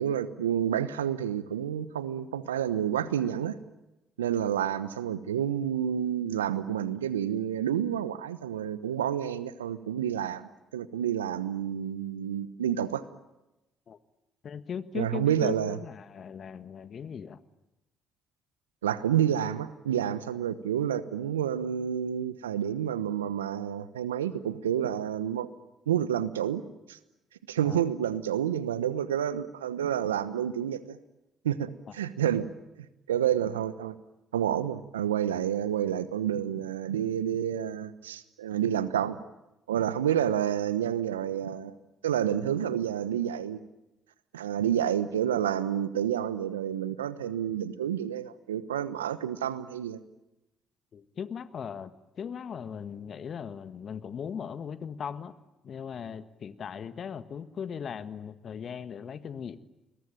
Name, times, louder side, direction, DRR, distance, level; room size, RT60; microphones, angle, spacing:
voice 1, 0.0-3.6 4.2-13.0 14.9-15.8 18.8-25.5 25.9-26.6 26.9-27.0 27.5-31.0 31.4-32.5 33.1-33.9 34.3-39.2 39.7-41.7 42.0-43.6 44.3-50.0, right 10 dB, 90° right, 15 dB, 1.0 m, -29 dB
voice 2, 14.4-17.4 27.6-27.9 31.9-32.0 32.2-32.3 50.9-55.3 55.6-59.6, left 7 dB, 50° left, 12 dB, 1.6 m, -38 dB
30.0 x 21.5 x 9.0 m, 0.99 s
hypercardioid pair, 50°, 0 cm